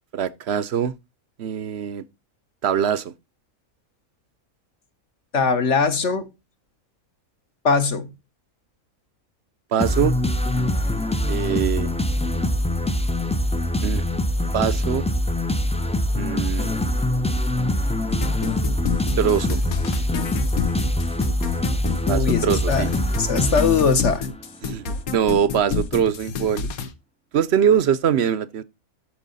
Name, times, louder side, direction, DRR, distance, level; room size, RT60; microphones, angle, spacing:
voice 1, 0.1-0.9 1.4-2.0 2.6-3.1 9.7-10.1 11.3-11.9 13.8-14.0 14.5-15.0 16.1-16.7 19.2-19.6 22.1-22.9 24.6-26.7 27.3-28.6, right 8 dB, 55° right, 0.8 m, -22 dB
voice 2, 5.3-6.3 7.6-8.1 22.1-22.9 23.2-24.3, left 5 dB, 55° left, 1.6 m, -21 dB
sound 1, 9.8-24.4, left 1 dB, 10° left, 0.4 m, -23 dB
sound 2, 18.1-26.9, left 5 dB, 75° left, 1.5 m, -28 dB
13.0 x 5.8 x 4.0 m
omnidirectional pair, 1.5 m